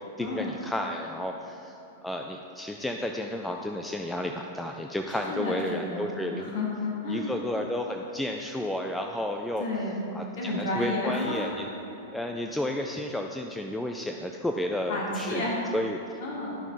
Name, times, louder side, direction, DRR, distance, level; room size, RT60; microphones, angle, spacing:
voice 1, 0.0-1.7 2.0-6.5 7.1-9.7 10.1-11.7 12.1-16.2, left 1 dB, 5° left, 2 dB, 0.4 m, -32 dB
voice 2, 5.1-7.3 9.6-10.0 10.4-11.5 14.9-15.6 16.2-16.6, left 2 dB, 55° left, -4 dB, 1.7 m, -31 dB
10.5 x 5.8 x 4.0 m, 2.9 s
figure-of-eight pair, 95°, 0 cm